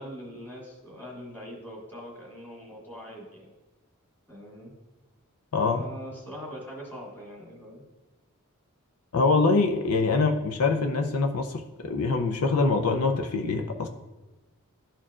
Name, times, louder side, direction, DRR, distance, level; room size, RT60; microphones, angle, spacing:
voice 1, 0.0-3.5 4.3-4.7 5.7-7.8, equal, 10° left, -3 dB, 1.9 m, -42 dB
voice 2, 5.5-5.8 9.1-13.9, left 3 dB, 75° left, 5 dB, 0.6 m, -24 dB
12.5 x 4.5 x 2.4 m, 1.1 s
head